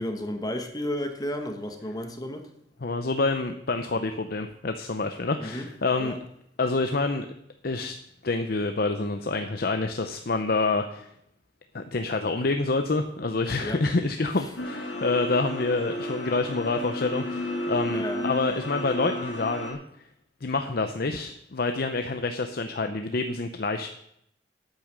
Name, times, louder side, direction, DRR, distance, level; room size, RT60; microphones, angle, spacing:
voice 1, 0.0-2.5 5.4-5.7 6.0-6.2 13.6-13.8 17.9-18.2, left 1 dB, 20° left, 5 dB, 1.3 m, -32 dB
voice 2, 2.8-6.2 6.6-7.3 7.6-7.9 8.2-11.1 11.7-19.8 20.4-23.9, left 3 dB, 55° left, 7 dB, 0.7 m, -27 dB
sound 1, 14.6-19.7, left 1 dB, 75° left, 2.7 m, -32 dB
9.2 x 8.7 x 6.7 m, 0.74 s
head